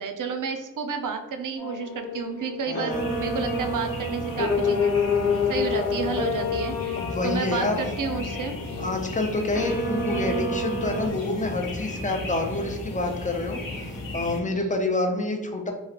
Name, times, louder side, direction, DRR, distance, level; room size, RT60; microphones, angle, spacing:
voice 1, 0.0-4.9 5.5-8.6 8.9-9.2 14.5-14.7, right 5 dB, 70° right, 6 dB, 0.5 m, -31 dB
sound 1, 1.6-11.1, left 3 dB, 50° left, 0.8 m, -28 dB
voice 2, 2.7-3.1 5.7-5.9 7.0-7.8 8.8-15.7, left 2 dB, 25° left, 3 dB, 0.5 m, -28 dB
sound 2, 2.9-14.4, left 2 dB, 90° left, 0.7 m, -35 dB
3.0 x 2.4 x 2.8 m, 1.1 s
cardioid pair, 60°, 32 cm